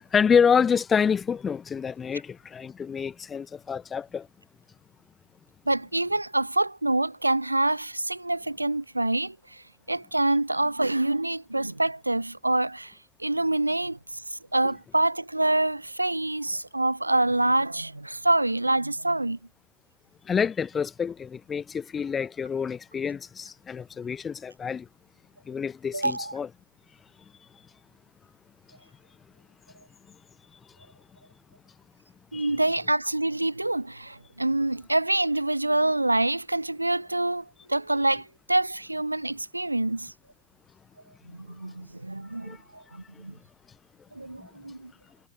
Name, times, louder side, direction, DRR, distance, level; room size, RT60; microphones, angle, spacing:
voice 1, 0.1-4.3 20.3-24.9 25.5-26.5 32.3-32.5 42.5-42.6, left 6 dB, 20° left, 0.7 m, -27 dB
voice 2, 5.7-12.9 13.2-14.0 14.3-19.4 25.9-26.3 32.3-40.1 41.3-43.3 44.1-44.9, right 2 dB, 85° right, 0.4 m, -26 dB
figure-of-eight pair, 90°, 0 cm